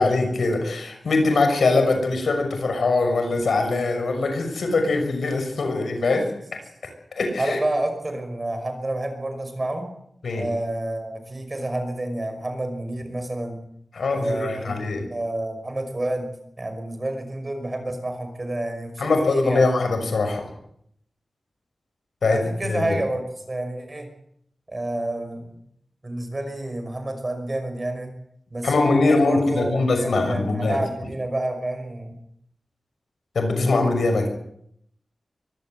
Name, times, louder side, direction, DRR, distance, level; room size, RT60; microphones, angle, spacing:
voice 1, 0.0-6.3 7.2-7.6 10.2-10.4 13.9-15.1 19.0-20.5 22.2-23.0 28.6-30.8 33.3-34.3, left 3 dB, 85° left, 6 dB, 6.1 m, -22 dB
voice 2, 7.4-9.9 10.3-13.6 14.1-16.3 16.6-19.7 22.3-24.1 24.7-25.4 26.0-28.1 28.5-32.2, right 1 dB, 25° right, 7 dB, 5.6 m, -29 dB
23.0 x 17.5 x 8.0 m, 0.72 s
wide cardioid pair, 120°, 0 cm